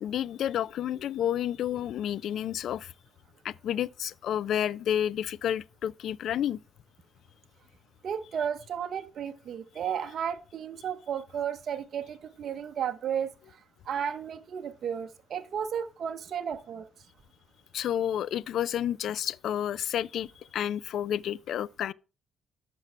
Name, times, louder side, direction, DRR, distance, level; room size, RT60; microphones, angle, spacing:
voice 1, 0.0-2.9 3.4-6.6 17.7-20.3 20.5-21.9, left 10 dB, 70° left, 0.3 m, -30 dB
voice 2, 8.0-13.6 13.9-16.9, right 8 dB, 60° right, 0.8 m, -33 dB
10.5 x 6.0 x 3.3 m
cardioid pair, 90°, 0 cm